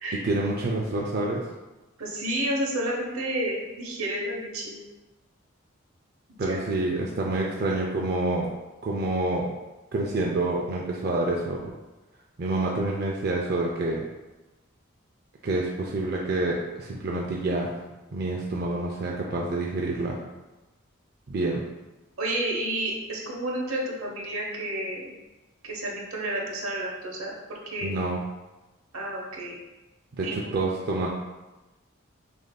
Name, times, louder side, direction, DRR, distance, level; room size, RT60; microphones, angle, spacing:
voice 1, 0.1-1.4 6.4-8.5 8.8-9.5 9.9-11.7 12.4-14.0 15.4-17.7 18.1-20.2 21.3-21.7 27.8-28.2 30.1-31.1, right 2 dB, 50° right, -2 dB, 0.4 m, -27 dB
voice 2, 2.0-4.8 6.4-6.6 22.2-25.1 25.6-27.9 28.9-29.6 30.1-30.7, right 1 dB, 85° right, -2 dB, 0.9 m, -31 dB
6.3 x 2.6 x 2.2 m, 1.1 s
head